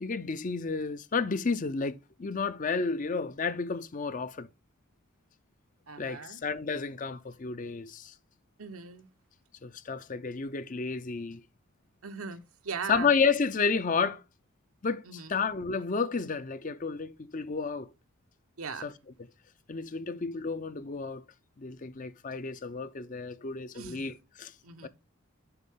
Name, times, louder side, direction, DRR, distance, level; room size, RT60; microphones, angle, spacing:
voice 1, 0.0-4.5 6.0-8.1 9.6-11.4 12.9-14.2 14.8-17.9 18.8-18.9 19.7-21.2 21.6-24.5 24.8-24.9, left 5 dB, 35° left, 0.5 m, -31 dB
voice 2, 5.9-6.4 8.6-9.1 12.0-13.1 15.1-15.3 18.6-18.9 23.7-24.1 24.6-24.9, right 5 dB, 80° right, 1.0 m, -39 dB
8.0 x 5.5 x 3.6 m
head